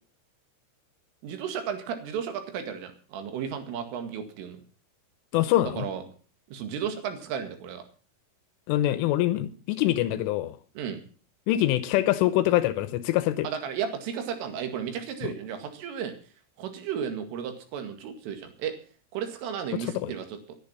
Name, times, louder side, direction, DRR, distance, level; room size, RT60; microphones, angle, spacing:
voice 1, 1.2-4.6 5.6-6.0 6.5-7.8 10.8-11.0 13.4-16.1 16.6-18.7 19.1-20.4, right 8 dB, 80° right, 7 dB, 4.6 m, -34 dB
voice 2, 5.3-5.9 8.7-10.6 11.5-13.5 19.7-20.1, left 14 dB, 80° left, 13 dB, 3.3 m, -24 dB
19.0 x 10.5 x 5.6 m, 0.40 s
omnidirectional pair, 5.8 m